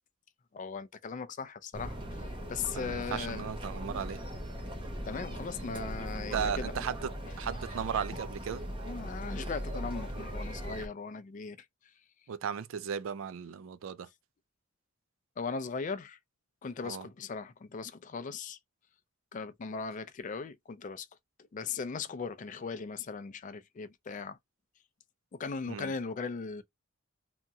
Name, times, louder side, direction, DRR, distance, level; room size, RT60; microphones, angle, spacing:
voice 1, 0.5-2.0 2.5-3.4 5.0-6.7 8.9-11.6 15.4-16.2 16.6-18.6 19.3-21.1 21.5-24.4 25.3-26.6, left 5 dB, 40° left, 0.4 m, -38 dB
sound 1, 1.7-10.9, equal, 25° right, 0.8 m, -39 dB
voice 2, 2.7-4.2 6.3-8.6 12.3-14.1 16.8-17.1 25.7-25.9, right 7 dB, 75° right, 0.4 m, -36 dB
2.8 x 2.6 x 2.3 m
head